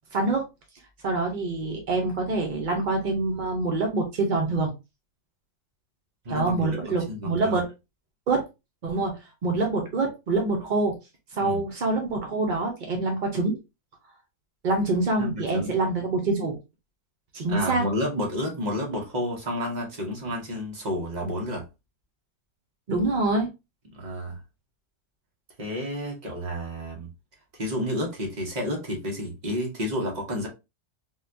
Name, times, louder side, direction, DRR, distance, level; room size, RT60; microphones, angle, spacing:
voice 1, 0.1-0.4 1.0-4.7 6.3-7.7 8.3-8.5 8.8-11.0 11.3-13.6 14.6-16.6 17.3-17.8 22.9-23.5, right 3 dB, 65° right, 0.4 m, -25 dB
voice 2, 6.2-7.6 11.4-11.6 15.2-15.8 17.5-21.6 23.9-24.4 25.6-27.1 27.6-30.5, equal, 35° right, 0.8 m, -30 dB
3.6 x 2.2 x 2.6 m
omnidirectional pair, 1.7 m